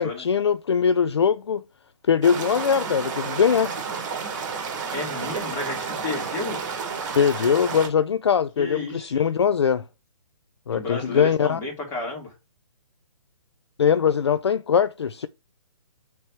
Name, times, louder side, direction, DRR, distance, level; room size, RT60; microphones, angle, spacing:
voice 1, 0.0-1.6 2.1-3.7 7.2-9.8 10.7-11.6 13.8-15.3, left 7 dB, 55° left, 0.4 m, -21 dB
sound 1, 2.2-7.9, right 5 dB, 35° right, 1.9 m, -31 dB
voice 2, 4.9-6.6 8.6-9.2 10.7-12.3, left 3 dB, 15° left, 2.5 m, -32 dB
6.4 x 3.5 x 4.4 m
figure-of-eight pair, 130°, 17 cm